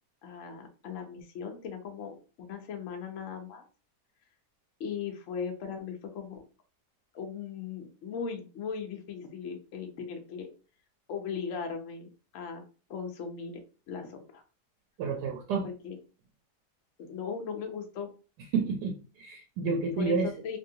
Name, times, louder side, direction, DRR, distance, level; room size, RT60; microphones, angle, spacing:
voice 1, 0.2-3.6 4.8-6.4 7.1-10.5 11.1-12.6 12.9-13.6 13.9-14.4 15.6-16.0 17.0-18.1 20.0-20.6, left 6 dB, 60° left, 3 dB, 0.9 m, -38 dB
voice 2, 15.0-15.7 18.5-20.3, right 4 dB, 85° right, 2 dB, 1.2 m, -30 dB
3.0 x 2.8 x 2.7 m, 0.35 s
omnidirectional pair, 1.8 m